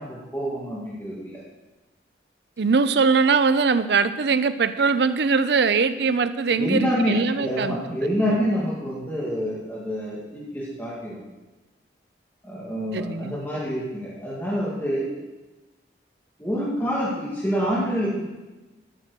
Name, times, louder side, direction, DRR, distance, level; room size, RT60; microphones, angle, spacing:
voice 1, 0.0-1.4 6.6-11.2 12.4-15.1 16.4-18.2, equal, 10° left, -7 dB, 2.1 m, -27 dB
voice 2, 2.6-7.8 12.9-13.4, right 5 dB, 65° right, 13 dB, 0.5 m, -21 dB
11.0 x 6.0 x 6.6 m, 1.1 s
head